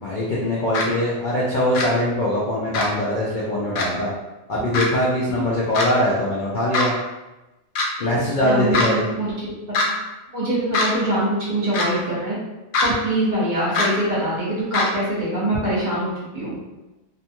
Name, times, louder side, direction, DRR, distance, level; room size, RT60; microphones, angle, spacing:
voice 1, 0.0-4.1 4.5-7.0 8.0-9.0, left 1 dB, 60° left, -6 dB, 0.5 m, -22 dB
sound 1, 0.7-0.8 1.7-1.9 2.7-2.9 3.8-3.9 4.7-4.9 5.7-5.9 6.7-6.9 7.8-7.9 8.7-8.9 9.7-9.9 10.7-10.9 11.7-11.9 12.7-12.9 13.7-13.9 14.7-14.9, left 3 dB, 85° left, 1.0 m, -21 dB
voice 2, 8.4-9.9 10.3-12.4 12.8-16.6, right 1 dB, 40° right, -8 dB, 1.0 m, -24 dB
2.6 x 2.3 x 2.8 m, 1.0 s
omnidirectional pair, 1.4 m